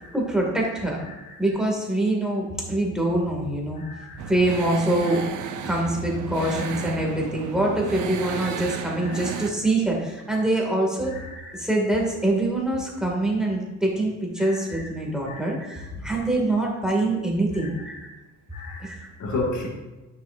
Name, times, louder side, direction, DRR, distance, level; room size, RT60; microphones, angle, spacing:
voice 1, 0.1-1.0 1.4-3.8 4.1-5.2 5.6-18.1 18.8-19.1, right 1 dB, ahead, -2 dB, 2.1 m, -25 dB
voice 2, 3.8-4.2 5.0-5.2 6.4-6.6 9.0-9.2 11.1-11.3 14.4-14.6 15.3-15.5 15.9-16.1 17.5-17.7 18.5-18.8 19.2-19.7, left 2 dB, 70° left, -2 dB, 1.9 m, -33 dB
sound 1, 4.2-9.5, right 8 dB, 80° right, 0.7 m, -33 dB
11.0 x 6.3 x 2.6 m, 1.1 s
cardioid pair, 90°, 30 cm